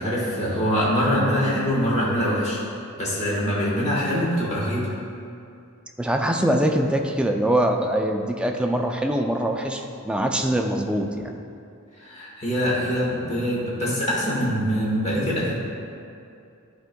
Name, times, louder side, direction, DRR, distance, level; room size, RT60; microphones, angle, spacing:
voice 1, 0.0-2.6 3.0-4.9 12.0-15.5, equal, 30° left, -6 dB, 1.5 m, -24 dB
voice 2, 6.0-11.4, right 1 dB, 5° right, 3 dB, 0.3 m, -23 dB
10.5 x 4.4 x 2.2 m, 2.5 s
head